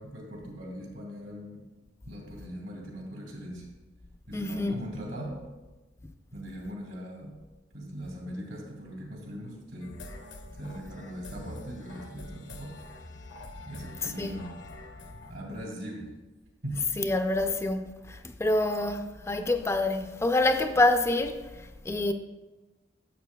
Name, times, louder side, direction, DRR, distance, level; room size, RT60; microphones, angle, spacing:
voice 1, 0.0-1.6 2.1-3.7 4.3-5.4 6.3-7.4 7.7-9.9 10.6-12.8 13.7-14.5 15.3-16.1 16.6-16.8, equal, 80° right, 2.4 m, -40 dB
voice 2, 4.3-4.8 14.0-14.4 17.0-22.1, left 2 dB, 15° left, 0.3 m, -27 dB
sound 1, 9.8-15.3, left 2 dB, 80° left, 0.8 m, -46 dB
12.0 x 7.1 x 2.2 m
head